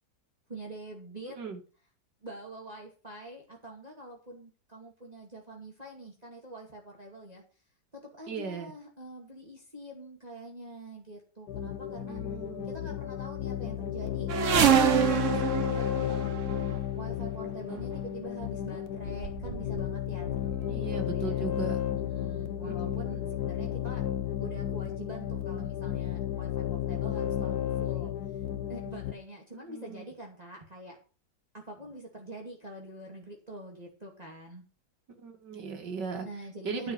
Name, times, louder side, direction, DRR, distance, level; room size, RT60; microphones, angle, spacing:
voice 1, 0.5-1.4 2.2-7.4 7.9-12.2 12.6-16.5 16.9-21.5 21.9-24.0 24.4-28.1 28.7-31.0 31.5-34.6 36.2-36.9, right 1 dB, 20° right, -1 dB, 2.4 m, -45 dB
voice 2, 1.2-1.6 8.3-8.7 12.1-12.9 20.4-21.8 22.6-23.0 29.7-30.0 35.2-36.3 36.6-36.9, right 5 dB, 80° right, 4 dB, 2.6 m, -38 dB
sound 1, 11.5-29.1, left 11 dB, 70° left, 1.3 m, -33 dB
sound 2, 14.3-16.8 17.8-18.0 18.7-18.8 19.1-19.9 20.3-20.8 21.5-21.6 21.9-22.0, right 9 dB, 50° right, 1.2 m, -26 dB
9.7 x 5.5 x 7.8 m, 0.36 s
omnidirectional pair, 1.8 m